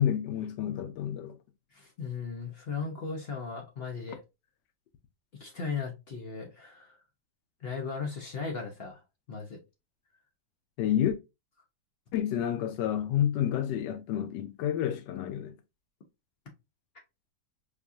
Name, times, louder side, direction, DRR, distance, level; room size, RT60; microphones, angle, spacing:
voice 1, 0.0-1.4 10.8-11.1 12.1-15.5, left 10 dB, 90° left, 1.2 m, -29 dB
voice 2, 1.7-4.2 5.4-7.0 7.6-9.0 9.3-9.6, left 5 dB, 55° left, 0.7 m, -37 dB
4.7 x 2.3 x 2.6 m
omnidirectional pair, 1.8 m